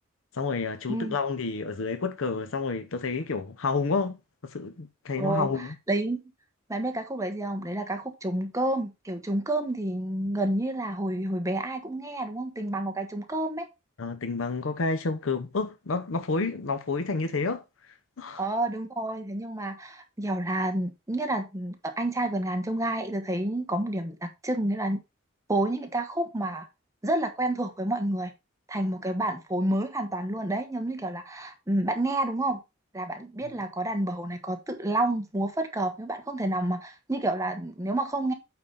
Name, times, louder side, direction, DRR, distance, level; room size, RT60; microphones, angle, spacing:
voice 1, 0.3-4.2 4.4-5.7 14.0-18.5, left 4 dB, 80° left, 0.7 m, -30 dB
voice 2, 5.2-5.5 5.9-6.2 6.7-13.7 18.4-25.0 25.5-26.7 27.0-28.3 28.7-32.6 32.9-38.3, right 1 dB, 15° right, 1.2 m, -29 dB
8.6 x 4.0 x 5.3 m
head